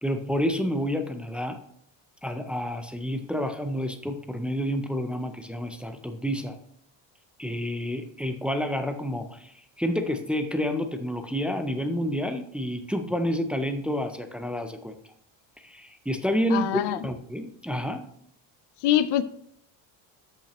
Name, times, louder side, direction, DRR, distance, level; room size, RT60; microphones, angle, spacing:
voice 1, 0.0-1.6 2.2-6.6 7.4-14.9 15.6-18.1, equal, 5° right, 7 dB, 0.3 m, -29 dB
voice 2, 16.5-17.0 18.8-19.2, left 12 dB, 60° left, 14 dB, 0.6 m, -23 dB
13.0 x 5.7 x 3.0 m, 0.68 s
cardioid pair, 150°, 47 cm